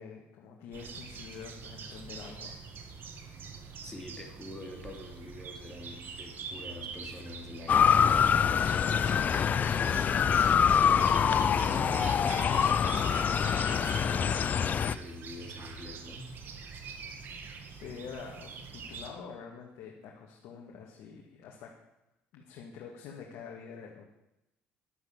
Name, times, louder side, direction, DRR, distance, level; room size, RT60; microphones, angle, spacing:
voice 1, 0.0-2.6 17.7-21.7 22.3-24.1, left 6 dB, 80° left, -1 dB, 2.1 m, -46 dB
sound 1, 0.7-19.1, right 5 dB, 55° right, 1.9 m, -44 dB
voice 2, 3.8-8.5 8.8-16.3, left 1 dB, 15° left, 2 dB, 3.0 m, -45 dB
Motor vehicle (road) / Siren, 7.7-15.0, left 7 dB, 45° left, 0.5 m, -25 dB
12.0 x 8.0 x 7.5 m, 0.89 s
cardioid pair, 100°, 4 cm